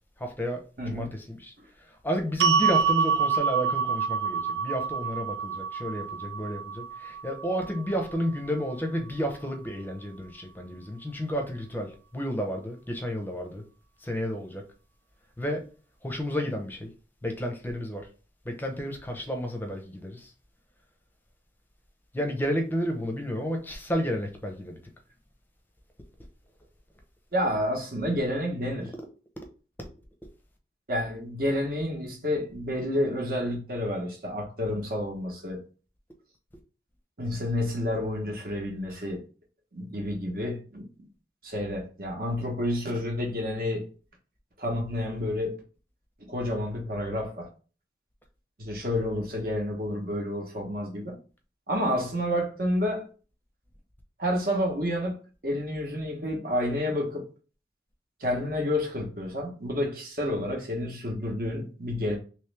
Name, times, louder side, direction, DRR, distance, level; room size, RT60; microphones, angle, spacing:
voice 1, 0.2-0.6 0.9-1.5 2.0-13.6 14.0-14.6 15.4-15.6 16.0-16.9 17.2-18.1 18.5-20.3 22.1-24.8 29.8-29.9, equal, 10° left, 0.7 m, -31 dB
voice 2, 0.8-1.1 27.3-28.9 30.9-35.6 37.2-39.2 39.7-40.9 41.4-43.9 44.6-45.6 46.3-47.5 48.6-51.2 51.7-53.1 54.2-55.2 55.4-57.3 58.2-62.2, left 1 dB, 55° right, 1.1 m, -29 dB
sound 1, 2.4-8.6, right 6 dB, 75° right, 0.3 m, -27 dB
3.2 x 3.1 x 3.3 m
head